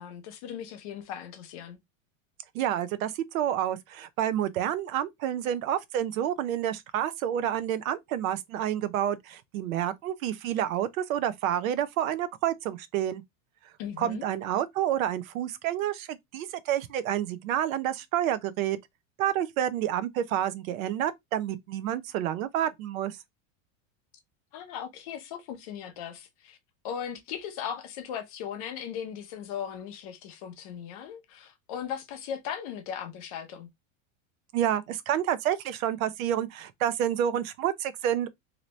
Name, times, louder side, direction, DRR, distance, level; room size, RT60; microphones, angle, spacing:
voice 1, 0.0-1.8 13.8-14.3 24.5-26.6 26.8-33.7, left 8 dB, 30° left, 0.4 m, -38 dB
voice 2, 2.5-13.2 14.0-18.8 19.2-23.2 34.5-38.3, right 11 dB, 90° right, 0.7 m, -29 dB
2.9 x 2.6 x 3.1 m
supercardioid pair, 180°, 40 cm